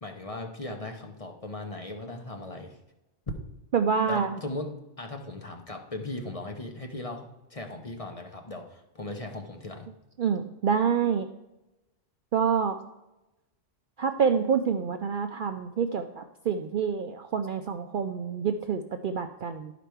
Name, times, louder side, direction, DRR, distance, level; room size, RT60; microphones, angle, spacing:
voice 1, 0.0-2.8 4.1-9.9, left 2 dB, 35° left, 4 dB, 0.8 m, -38 dB
voice 2, 3.7-4.3 10.2-11.3 12.3-12.8 14.0-19.7, right 6 dB, 60° right, 6 dB, 0.6 m, -27 dB
11.5 x 5.0 x 4.5 m, 0.98 s
omnidirectional pair, 1.2 m